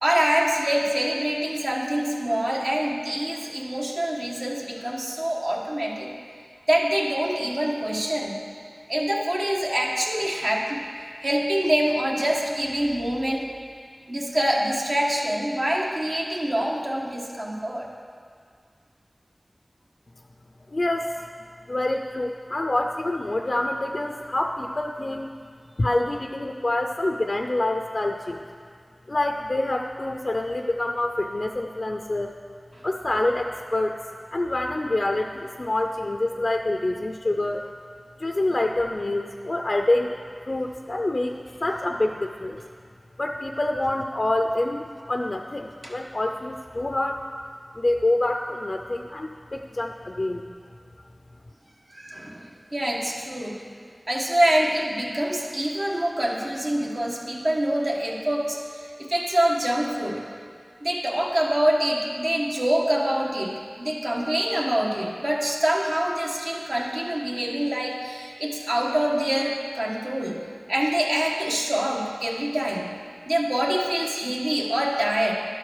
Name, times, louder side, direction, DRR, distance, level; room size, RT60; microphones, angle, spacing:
voice 1, 0.0-6.1 6.7-8.3 8.9-10.8 11.2-13.5 14.1-17.9 32.7-32.9 45.8-45.9 51.9-53.6 54.1-60.3 60.8-70.4 70.7-72.9 73.3-75.3, right 1 dB, 60° right, -3 dB, 1.2 m, -25 dB
voice 2, 20.7-21.3 21.7-25.3 25.8-28.4 29.1-32.3 32.8-34.0 34.3-37.6 38.2-40.1 40.4-41.3 41.6-42.6 43.2-47.2 47.8-50.5, left 1 dB, 55° left, 3 dB, 0.4 m, -26 dB
11.5 x 4.7 x 6.3 m, 2.1 s
wide cardioid pair, 60°, 0 cm